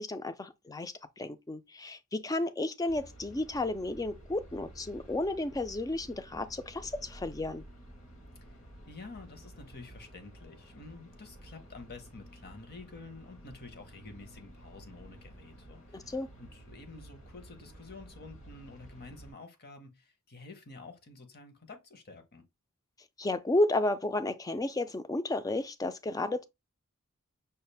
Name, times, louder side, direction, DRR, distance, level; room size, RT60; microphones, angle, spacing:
voice 1, 0.0-7.6 15.9-16.3 23.2-26.4, left 2 dB, 15° left, 0.4 m, -32 dB
sound 1, 2.9-19.3, right 1 dB, 60° left, 1.5 m, -52 dB
voice 2, 8.9-22.4, left 3 dB, 45° left, 1.0 m, -49 dB
5.5 x 2.5 x 3.3 m
head